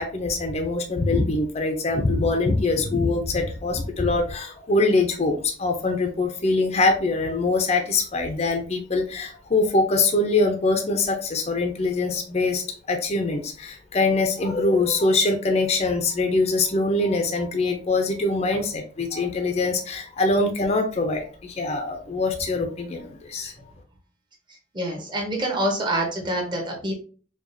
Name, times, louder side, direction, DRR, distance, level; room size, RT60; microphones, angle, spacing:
voice 1, 0.0-12.6 12.9-23.5, left 3 dB, 35° left, 4 dB, 0.4 m, -23 dB
voice 2, 24.7-26.9, right 1 dB, 25° right, 0 dB, 0.9 m, -26 dB
4.7 x 2.3 x 2.6 m, 0.41 s
head